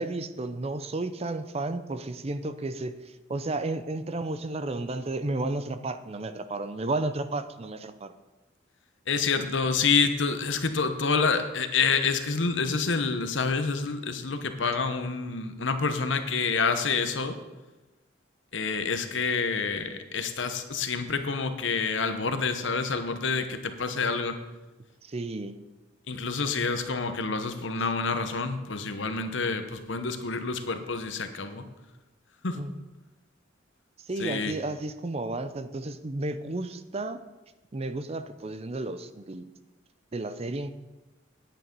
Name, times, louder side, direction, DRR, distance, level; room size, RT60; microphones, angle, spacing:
voice 1, 0.0-8.1 25.0-25.6 32.5-32.8 34.0-37.2 37.7-39.5 40.1-40.7, right 2 dB, 30° right, 11 dB, 0.5 m, -32 dB
voice 2, 9.1-17.4 18.5-24.4 26.1-31.6 32.4-32.6 34.2-34.5, left 4 dB, 70° left, 8 dB, 1.0 m, -28 dB
9.8 x 9.2 x 5.3 m, 1.1 s
head